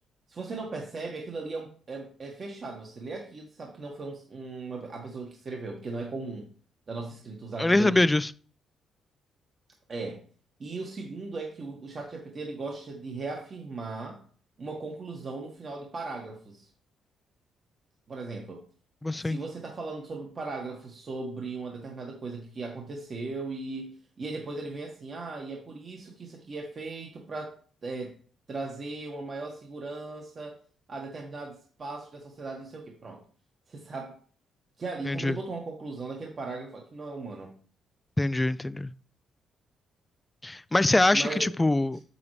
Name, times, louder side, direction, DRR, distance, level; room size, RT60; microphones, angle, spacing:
voice 1, 0.3-6.5 6.9-8.1 9.9-10.2 10.6-14.2 14.6-16.7 18.1-18.6 19.2-27.6 27.8-28.2 28.5-30.6 30.9-33.2 33.7-34.2 34.8-37.5 41.1-41.5, right 3 dB, 40° right, 1.3 m, -37 dB
voice 2, 7.6-8.3 19.0-19.4 35.1-35.3 38.2-38.9 40.4-42.0, left 2 dB, 15° left, 0.3 m, -24 dB
7.2 x 6.9 x 3.2 m
cardioid pair, 90°, 0 cm